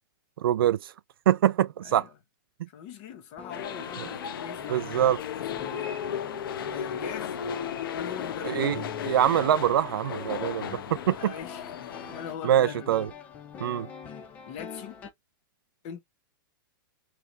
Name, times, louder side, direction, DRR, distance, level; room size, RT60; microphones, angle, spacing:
voice 1, 0.4-0.9 1.3-2.1 2.6-2.7 4.7-5.2 8.4-11.3 12.4-13.1 13.6-13.9, right 11 dB, 85° right, 0.4 m, -24 dB
voice 2, 1.8-2.2 2.7-5.1 5.4-6.0 6.7-7.4 7.9-8.6 11.1-12.9 14.5-15.0 15.8-16.0, left 8 dB, 30° left, 0.9 m, -42 dB
sound 1, 3.4-15.1, left 6 dB, 10° left, 0.4 m, -45 dB
sound 2, 3.5-12.3, left 8 dB, 75° left, 0.9 m, -35 dB
4.6 x 3.2 x 2.6 m
supercardioid pair, 180°, 12 cm